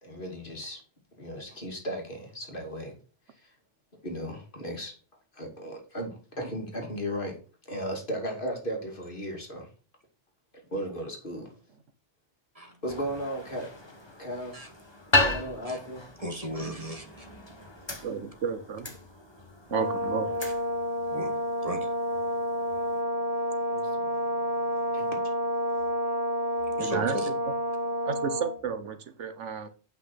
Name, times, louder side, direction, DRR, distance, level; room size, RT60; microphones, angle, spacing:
voice 1, 0.0-0.8 1.1-3.0 3.3-3.5 4.0-4.9 5.3-7.4 7.7-9.7 10.7-11.5 12.8-13.7 14.2-14.6 15.1-16.1 23.7-24.1 24.9-25.2, equal, 45° left, 2.8 m, -36 dB
sound 1, 12.9-23.0, left 2 dB, 20° left, 1.6 m, -35 dB
voice 2, 16.2-17.9 20.4-20.5 21.1-22.2 24.4-24.8 25.7-25.9 26.7-27.3, right 1 dB, 30° right, 1.8 m, -38 dB
voice 3, 18.0-18.9 19.7-20.3 26.8-27.2 28.0-29.7, right 6 dB, 80° right, 1.3 m, -32 dB
Brass instrument, 19.7-28.6, equal, 5° left, 3.8 m, -29 dB
8.4 x 5.9 x 5.8 m
omnidirectional pair, 1.2 m